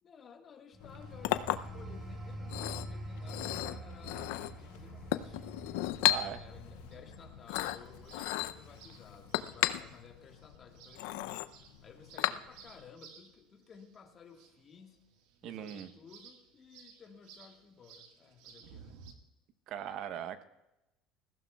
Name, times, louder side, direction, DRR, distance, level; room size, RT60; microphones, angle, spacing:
voice 1, 0.0-5.5 6.0-15.0 15.4-19.0, left 6 dB, 30° left, 3 dB, 1.6 m, -56 dB
sound 1, 0.7-11.1 11.5-11.8, right 2 dB, 20° right, 1.7 m, -47 dB
Chink clink, 0.8-12.8, left 15 dB, 85° left, 0.5 m, -36 dB
sound 2, 3.1-19.1, right 7 dB, 80° right, 1.6 m, -59 dB
voice 2, 6.1-6.4 15.4-15.9 19.7-20.4, right 9 dB, 50° right, 11 dB, 0.9 m, -39 dB
21.0 x 15.0 x 2.3 m, 0.94 s
cardioid pair, 150°, 0 cm